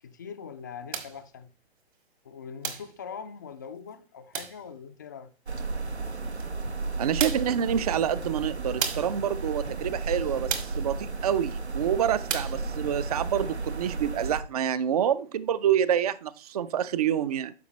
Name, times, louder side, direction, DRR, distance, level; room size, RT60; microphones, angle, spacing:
voice 1, 0.0-1.5 2.2-5.3, left 6 dB, 20° left, 0.4 m, -42 dB
sound 1, 0.9-1.2 2.6-2.9 4.3-4.6 6.4-6.5 7.2-7.6 8.8-9.2 10.5-10.8 12.3-12.6, right 7 dB, 55° right, 1.6 m, -33 dB
sound 2, 5.5-14.4, right 3 dB, 85° right, 1.0 m, -33 dB
voice 2, 7.0-17.5, right 9 dB, 35° right, 0.5 m, -27 dB
13.0 x 5.1 x 3.0 m
figure-of-eight pair, 130°, 32 cm